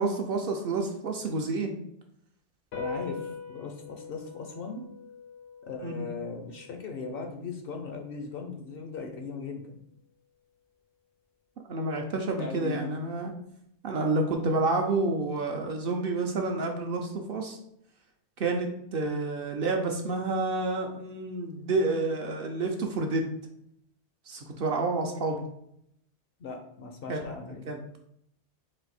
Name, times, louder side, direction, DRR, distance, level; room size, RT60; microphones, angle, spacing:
voice 1, 0.0-1.7 5.8-6.1 11.7-13.3 13.8-17.6 18.4-23.3 24.3-25.4 27.1-27.2 27.7-28.0, right 3 dB, 60° right, 2 dB, 0.7 m, -29 dB
sound 1, 2.7-9.4, left 5 dB, 85° left, 1.1 m, -43 dB
voice 2, 2.7-4.8 5.6-9.8 12.4-12.9 26.4-27.7, left 4 dB, 60° left, 3 dB, 0.7 m, -38 dB
4.2 x 2.5 x 4.0 m, 0.73 s
omnidirectional pair, 1.2 m